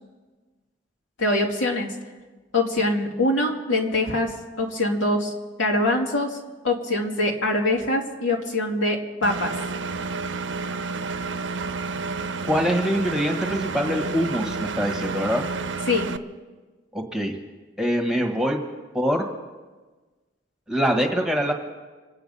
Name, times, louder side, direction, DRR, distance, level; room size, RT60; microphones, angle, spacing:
voice 1, 1.2-1.9 2.5-5.3 5.6-6.4 6.6-9.5 15.9-16.1, left 2 dB, 85° left, -1 dB, 2.7 m, -23 dB
Engine, 9.2-16.2, right 4 dB, 75° right, 0.7 m, -30 dB
voice 2, 12.4-15.4 16.9-17.3 17.8-18.6 18.9-19.2 20.7-21.5, equal, 5° right, 2 dB, 1.4 m, -24 dB
27.0 x 9.2 x 5.5 m, 1.3 s
head